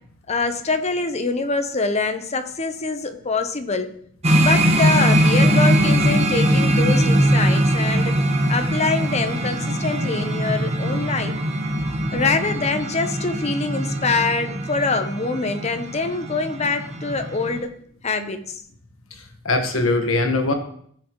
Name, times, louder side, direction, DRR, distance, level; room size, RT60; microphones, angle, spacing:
voice 1, 0.3-3.9 4.4-8.2 8.5-11.3 12.1-17.7 18.0-18.6, left 3 dB, 35° left, 8 dB, 0.8 m, -24 dB
sound 1, 4.2-17.6, right 1 dB, 35° right, 1.1 m, -21 dB
voice 2, 19.1-20.5, left 2 dB, 80° left, 4 dB, 1.4 m, -22 dB
14.5 x 6.4 x 3.1 m, 0.64 s
head